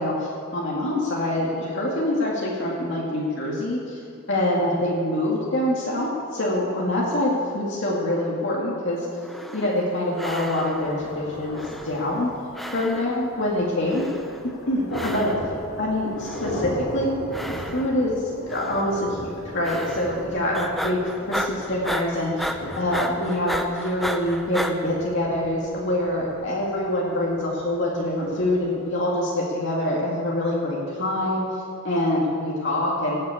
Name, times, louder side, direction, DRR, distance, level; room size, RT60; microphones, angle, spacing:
voice 1, 0.0-4.0 4.3-9.1 9.5-12.3 12.7-14.1 14.7-15.3 15.8-17.2 17.7-21.0 21.3-31.4 31.8-33.2, left 1 dB, 55° left, -4 dB, 2.0 m, -25 dB
sound 1, 9.2-9.9 10.2-11.0 11.5-12.3 12.5-13.3 13.9-14.5 14.9-15.6 16.2-16.8 17.3-18.1 18.5-19.0 19.6-20.3 20.5-24.7, equal, ahead, 0.5 m, -33 dB
Thunder, 10.1-29.1, equal, 70° left, 3.1 m, -38 dB
17.0 x 6.6 x 8.3 m, 2.5 s
head